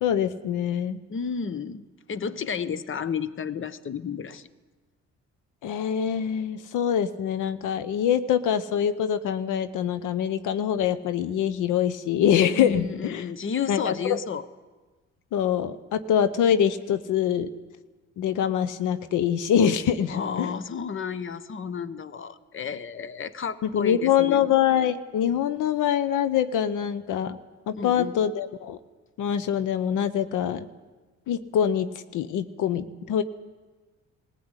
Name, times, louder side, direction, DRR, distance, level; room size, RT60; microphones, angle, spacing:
voice 1, 0.0-1.0 5.6-13.2 13.7-14.2 15.3-17.5 18.2-20.5 23.6-27.4 27.7-28.8 29.2-30.7 31.3-33.2, left 9 dB, 85° left, 14 dB, 1.0 m, -24 dB
voice 2, 1.1-4.5 12.5-14.4 20.1-24.5 27.8-28.2, left 6 dB, 40° left, 15 dB, 1.1 m, -32 dB
20.0 x 15.5 x 9.8 m, 1.3 s
cardioid pair, 90°, 30 cm